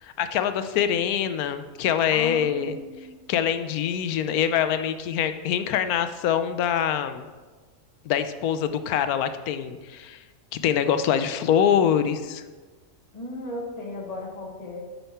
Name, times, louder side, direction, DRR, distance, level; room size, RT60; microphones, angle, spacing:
voice 1, 0.0-2.8 3.3-7.3 8.1-10.2 10.5-12.4, left 9 dB, 90° left, 10 dB, 1.1 m, -24 dB
voice 2, 2.1-3.1 13.1-14.8, left 1 dB, 30° left, -3 dB, 1.4 m, -36 dB
8.9 x 5.7 x 4.2 m, 1.3 s
omnidirectional pair, 1.5 m